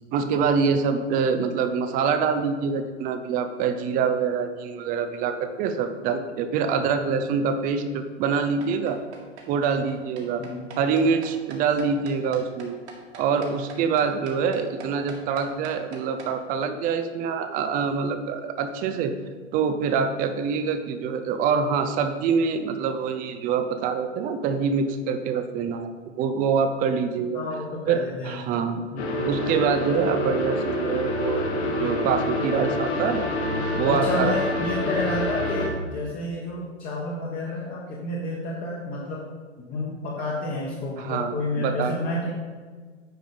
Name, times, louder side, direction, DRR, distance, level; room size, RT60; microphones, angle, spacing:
voice 1, 0.1-9.0 9.5-10.4 10.7-12.8 13.2-19.1 19.5-25.9 26.2-27.4 27.9-28.8 29.2-33.3 33.7-34.3 41.0-42.0, right 6 dB, 25° right, 9 dB, 0.6 m, -25 dB
sound 1, 8.4-16.3, right 5 dB, 65° right, 2.0 m, -43 dB
voice 2, 27.3-28.4 28.9-29.2 33.9-39.3 39.6-42.3, left 2 dB, 25° left, -4 dB, 1.3 m, -30 dB
sound 2, 29.0-35.7, left 1 dB, 60° left, 1.7 m, -27 dB
9.5 x 5.2 x 5.1 m, 1.5 s
figure-of-eight pair, 110°, 37 cm